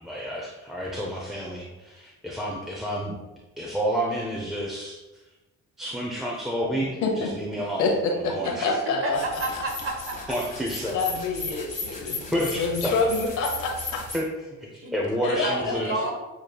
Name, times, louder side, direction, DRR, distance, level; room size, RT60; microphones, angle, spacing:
voice 1, 0.0-3.2 3.6-5.0 5.8-7.9 8.3-8.8 10.3-11.0 12.3-12.9 14.1-14.2 14.6-16.0, equal, ahead, -4 dB, 0.7 m, -30 dB
voice 2, 7.8-9.4 10.9-14.0 15.2-16.1, left 3 dB, 85° left, 1 dB, 1.0 m, -27 dB
voice 3, 9.0-10.4 14.8-14.9 15.3-16.1, right 2 dB, 45° right, 1 dB, 1.2 m, -31 dB
sound 1, 9.1-14.2, left 3 dB, 25° left, 1.2 m, -36 dB
7.1 x 3.2 x 2.3 m, 1.1 s
cardioid pair, 90°, 30 cm